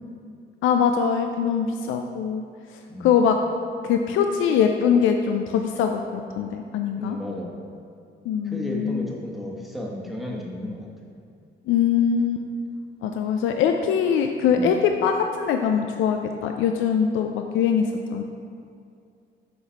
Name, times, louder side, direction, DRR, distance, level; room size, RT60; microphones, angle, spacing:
voice 1, 0.6-2.4 3.0-3.4 3.8-7.2 8.3-9.1 11.7-12.4 13.0-18.2, left 7 dB, 80° left, 5 dB, 0.4 m, -22 dB
voice 2, 2.9-3.2 7.0-7.6 8.4-10.9 14.5-14.8, left 1 dB, ahead, -2 dB, 1.2 m, -33 dB
7.0 x 4.0 x 4.5 m, 2.4 s
cardioid pair, 90°, 20 cm